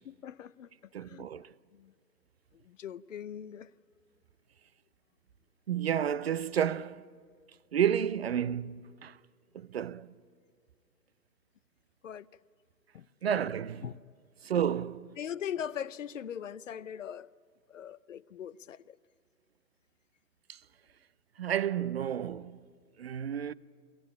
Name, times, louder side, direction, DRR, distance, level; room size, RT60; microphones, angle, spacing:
voice 1, 0.0-1.2 1.7-1.9 2.5-3.7 12.0-12.3 12.9-13.1 13.8-13.9 14.4-14.5 15.2-17.3 17.7-19.0, left 9 dB, 55° left, 0.7 m, -41 dB
voice 2, 0.9-1.5 5.7-7.0 7.7-9.2 9.5-10.1 13.2-13.8 14.4-15.2 20.5-20.6 21.4-22.6 23.0-23.5, right 9 dB, 40° right, 0.5 m, -31 dB
23.0 x 17.5 x 9.9 m
figure-of-eight pair, 130°, 47 cm